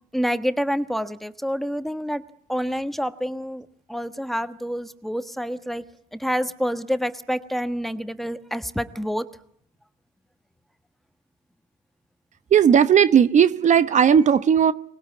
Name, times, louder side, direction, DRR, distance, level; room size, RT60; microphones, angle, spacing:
voice 1, 0.1-2.2 2.5-5.8 6.1-9.2, equal, ahead, 1.3 m, -27 dB
voice 2, 12.5-14.7, right 8 dB, 45° right, 1.0 m, -16 dB
24.0 x 20.0 x 9.4 m
cardioid pair, 110°, 17 cm